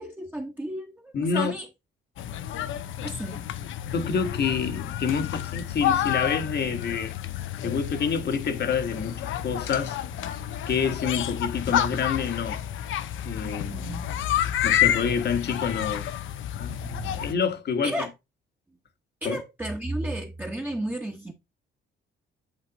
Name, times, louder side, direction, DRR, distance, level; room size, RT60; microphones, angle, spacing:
voice 1, 0.0-1.7 3.0-3.5 13.7-14.1 16.7-17.2 17.8-18.1 19.2-21.3, right 1 dB, 10° right, 1.1 m, -33 dB
voice 2, 1.1-1.5 3.9-7.1 7.6-10.0 10.7-12.6 13.2-13.8 14.6-16.1 16.6-16.8 17.1-18.0 19.2-19.4, left 6 dB, 55° left, 1.4 m, -27 dB
sound 1, 2.2-17.3, left 11 dB, 80° left, 0.7 m, -29 dB
8.7 x 3.4 x 4.0 m
cardioid pair, 90°, 20 cm